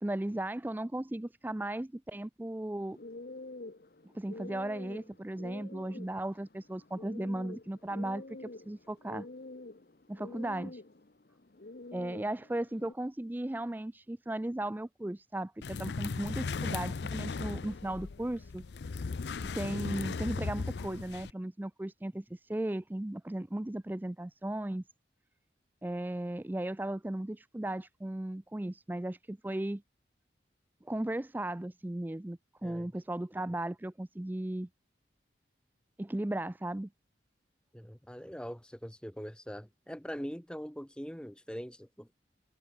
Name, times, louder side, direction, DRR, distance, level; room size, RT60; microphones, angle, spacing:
voice 1, 0.0-3.0 4.1-9.3 10.1-10.8 11.9-18.6 19.5-24.8 25.8-29.8 30.8-34.7 36.0-36.9, right 1 dB, 10° right, 0.3 m, -36 dB
sound 1, 2.8-12.9, left 2 dB, 55° left, 0.9 m, -48 dB
sound 2, 15.6-21.3, left 4 dB, 70° left, 0.5 m, -37 dB
voice 2, 32.6-32.9 37.7-42.1, equal, 5° left, 1.5 m, -42 dB
head